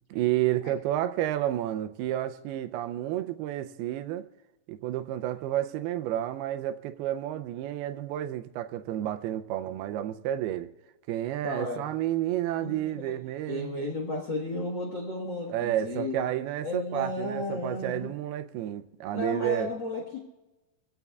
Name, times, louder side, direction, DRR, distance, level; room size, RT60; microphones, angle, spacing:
voice 1, 0.1-4.2 4.7-10.7 11.1-13.7 15.5-19.7, right 13 dB, 85° right, 2.6 m, -30 dB
voice 2, 11.4-11.8 12.6-13.1 13.5-16.3 16.6-18.1 19.1-20.2, left 2 dB, 50° left, 1.3 m, -33 dB
25.5 x 16.0 x 2.4 m
omnidirectional pair, 4.5 m